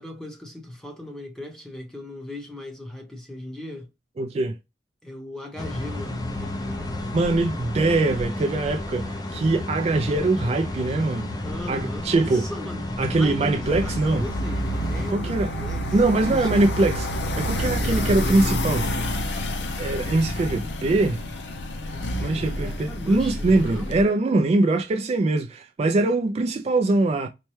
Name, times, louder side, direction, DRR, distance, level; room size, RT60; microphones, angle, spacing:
voice 1, 0.0-3.9 5.0-7.2 11.4-16.6 17.8-19.1 21.9-24.0, left 1 dB, 5° left, 0.9 m, -38 dB
voice 2, 4.2-4.6 7.1-11.3 11.7-12.5 13.0-14.2 15.1-15.6 15.9-18.8 19.8-21.2 22.2-27.3, right 2 dB, 35° right, 0.3 m, -22 dB
sound 1, 5.6-15.1, left 1 dB, 20° left, 0.6 m, -32 dB
sound 2, 13.6-24.0, left 1 dB, 80° left, 0.7 m, -28 dB
4.3 x 2.2 x 3.1 m
head